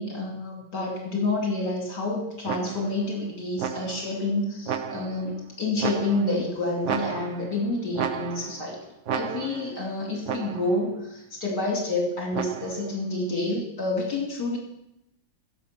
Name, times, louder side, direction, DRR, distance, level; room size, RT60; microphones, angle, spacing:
voice 1, 0.0-8.8 9.1-14.6, left 2 dB, 60° left, -1 dB, 3.2 m, -28 dB
Multiple trombone blips Ab-C, 2.5-3.0 3.6-4.2 4.7-5.3 5.8-6.5 6.8-7.6 7.9-8.7 9.1-9.8 10.3-10.8 12.3-12.9, right 7 dB, 65° right, 0.7 m, -33 dB
15.5 x 7.3 x 5.8 m, 0.83 s
omnidirectional pair, 2.1 m